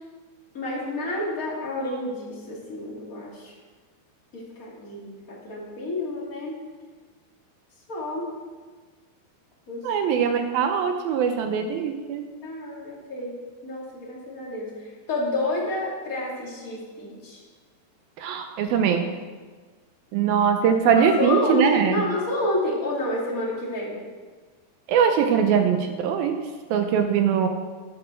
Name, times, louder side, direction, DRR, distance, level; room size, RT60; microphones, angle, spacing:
voice 1, 0.5-3.5 4.3-6.6 7.9-8.3 9.7-9.9 12.4-17.4 20.9-24.0, left 1 dB, 25° left, -4 dB, 2.3 m, -29 dB
voice 2, 9.8-12.3 18.2-19.0 20.1-22.0 24.9-26.4 26.7-27.5, right 7 dB, 80° right, 6 dB, 2.2 m, -21 dB
12.5 x 8.9 x 6.2 m, 1.4 s
omnidirectional pair, 5.0 m